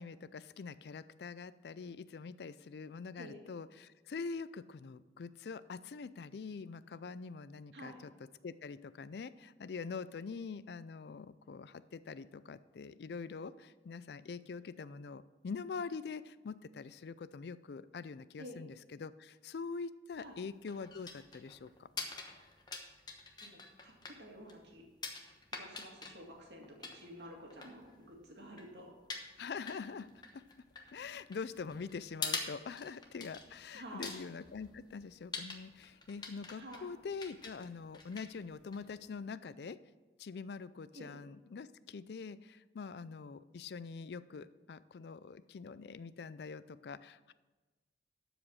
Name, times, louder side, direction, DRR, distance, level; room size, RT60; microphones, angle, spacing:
voice 1, 0.0-8.1 8.4-21.9 29.4-30.1 30.3-30.4 30.9-39.8 40.2-47.3, left 5 dB, 60° left, 16 dB, 0.4 m, -44 dB
sound 1, 20.1-39.2, left 4 dB, 25° left, 1.0 m, -47 dB
voice 2, 23.4-24.9 25.5-28.9 33.7-34.2 36.6-36.9 40.9-41.1, equal, 75° right, 0 dB, 2.1 m, -51 dB
12.5 x 5.0 x 6.2 m, 1.2 s
head